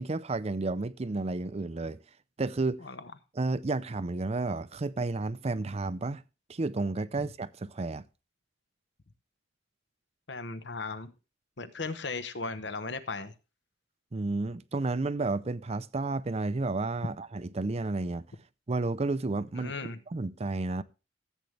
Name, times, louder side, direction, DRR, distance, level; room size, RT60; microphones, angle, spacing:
voice 1, 0.0-2.0 2.4-2.8 3.3-6.2 6.5-8.0 14.1-18.2 18.7-19.7 20.1-20.8, right 3 dB, 35° right, 0.5 m, -31 dB
voice 2, 10.3-11.1 11.6-13.3 19.6-20.0, left 3 dB, 65° left, 1.0 m, -36 dB
14.5 x 8.1 x 3.3 m
head